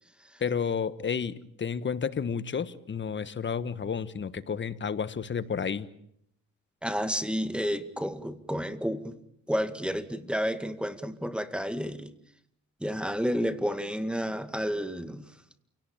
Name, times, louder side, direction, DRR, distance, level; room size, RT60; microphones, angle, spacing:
voice 1, 0.4-5.9, left 6 dB, 40° left, 14 dB, 1.4 m, -31 dB
voice 2, 6.8-9.2 9.5-12.1 12.8-15.2, equal, 5° right, 11 dB, 2.0 m, -31 dB
28.0 x 18.0 x 8.9 m, 0.73 s
cardioid pair, 90°, 30 cm